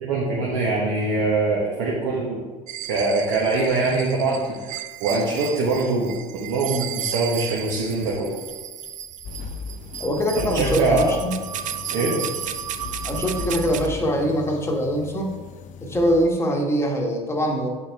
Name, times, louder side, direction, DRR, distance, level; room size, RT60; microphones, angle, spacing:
voice 1, 0.0-2.4 2.9-8.3 10.3-11.1 11.9-12.2, right 3 dB, 70° right, -4 dB, 1.2 m, -23 dB
sound 1, 2.7-13.9, right 10 dB, 45° right, 0.4 m, -34 dB
sound 2, 9.2-16.3, left 5 dB, 45° left, 0.5 m, -36 dB
voice 2, 10.0-11.4 13.0-15.3 15.8-17.7, equal, 15° left, 1 dB, 1.1 m, -23 dB
7.4 x 4.4 x 3.4 m, 1.4 s
supercardioid pair, 90°, 19 cm